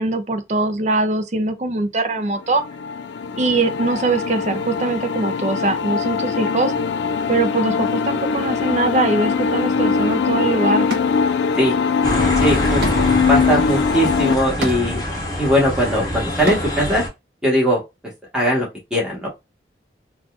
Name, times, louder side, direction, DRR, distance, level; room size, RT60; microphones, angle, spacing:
voice 1, 0.0-2.6 3.4-6.7 7.3-10.9, right 2 dB, 40° right, 0.5 m, -22 dB
sound 1, 2.5-14.4, left 5 dB, 80° left, 0.3 m, -21 dB
sound 2, 10.1-10.2 10.9-11.8 12.2-17.0, right 1 dB, 70° right, 1.1 m, -32 dB
sound 3, 12.0-17.1, left 1 dB, 20° left, 0.9 m, -25 dB
voice 2, 12.4-12.8 13.3-15.0 15.4-17.0 17.4-19.3, equal, 5° right, 1.3 m, -20 dB
3.9 x 2.4 x 2.4 m
head